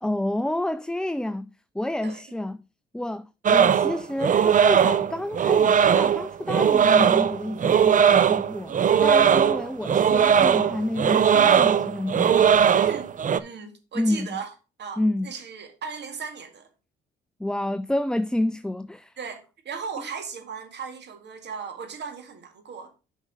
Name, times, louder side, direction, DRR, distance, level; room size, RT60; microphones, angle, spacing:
voice 1, 0.0-1.5 1.7-2.6 2.9-8.8 9.0-12.6 13.9-14.4 15.0-15.3 17.4-19.1, left 1 dB, 5° left, 0.3 m, -29 dB
sound 1, 3.4-13.4, right 7 dB, 40° right, 0.6 m, -19 dB
voice 2, 12.7-13.1 13.4-14.5 14.8-16.7 19.2-22.9, right 6 dB, 60° right, 2.1 m, -37 dB
7.3 x 5.2 x 5.1 m
cardioid pair, 90°, 20 cm